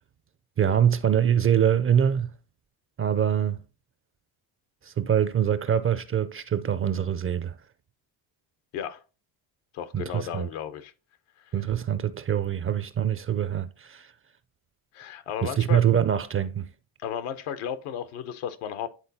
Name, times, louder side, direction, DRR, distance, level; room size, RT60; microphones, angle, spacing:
voice 1, 0.6-2.3 3.0-3.6 4.8-7.5 9.9-10.5 11.5-14.1 15.4-16.7, right 9 dB, 30° right, 0.4 m, -24 dB
voice 2, 9.7-10.9 11.5-11.6 14.9-15.8 17.0-18.9, left 9 dB, 80° left, 0.9 m, -34 dB
10.5 x 3.8 x 2.7 m
supercardioid pair, 80°, 49 cm